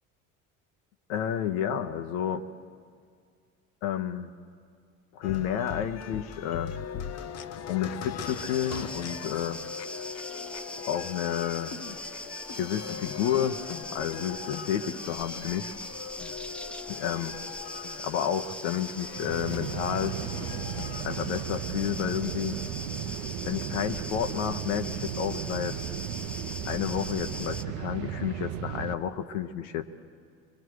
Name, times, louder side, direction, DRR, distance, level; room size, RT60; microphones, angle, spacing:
voice 1, 1.1-2.4 3.8-4.3 5.1-6.7 7.7-9.6 10.9-11.7 12.6-13.6 13.9-15.7 16.9-17.3 18.0-20.2 21.0-22.6 23.4-25.8 26.6-29.9, left 9 dB, 65° left, 7 dB, 1.1 m, -30 dB
sound 1, 5.2-21.9, left 8 dB, 40° left, 0.8 m, -40 dB
sound 2, 8.2-27.6, left 1 dB, 5° left, 0.7 m, -41 dB
sound 3, 19.1-28.9, right 10 dB, 70° right, 0.9 m, -35 dB
25.0 x 22.5 x 4.8 m, 2.1 s
hypercardioid pair, 70°, 39 cm